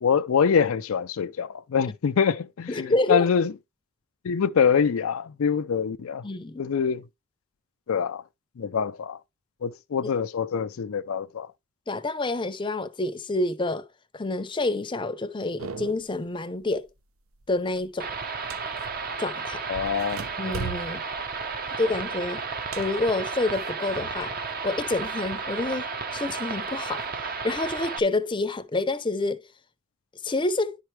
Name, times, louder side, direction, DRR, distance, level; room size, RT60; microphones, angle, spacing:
voice 1, 0.0-3.5 4.2-6.2 6.6-7.0 7.9-8.2 8.6-9.2 9.6-11.5 19.7-20.2, left 6 dB, 75° left, 0.4 m, -25 dB
voice 2, 2.7-3.3 6.2-6.7 10.0-10.1 11.9-13.9 14.1-16.9 17.5-18.1 19.2-19.6 20.4-21.0 21.8-22.4 22.8-24.3 24.6-27.0 27.4-29.4 30.2-30.8, left 2 dB, 20° left, 0.6 m, -28 dB
sound 1, 15.6-16.2 16.6-17.0 17.3-19.2 19.7-24.4 24.7-25.7 26.3-27.1, right 5 dB, 70° right, 0.7 m, -40 dB
sound 2, 18.0-28.0, right 4 dB, 45° right, 0.9 m, -33 dB
11.0 x 4.5 x 3.2 m
head